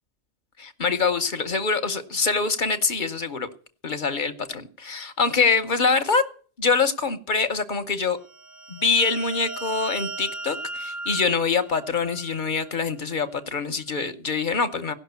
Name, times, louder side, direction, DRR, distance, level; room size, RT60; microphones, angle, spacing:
voice 1, 0.6-3.5 3.8-6.2 6.6-8.2 8.7-14.9, left 4 dB, 45° left, 1.0 m, -24 dB
sound 1, 8.3-12.7, right 3 dB, 25° right, 0.4 m, -37 dB
16.5 x 6.1 x 8.1 m
omnidirectional pair, 1.2 m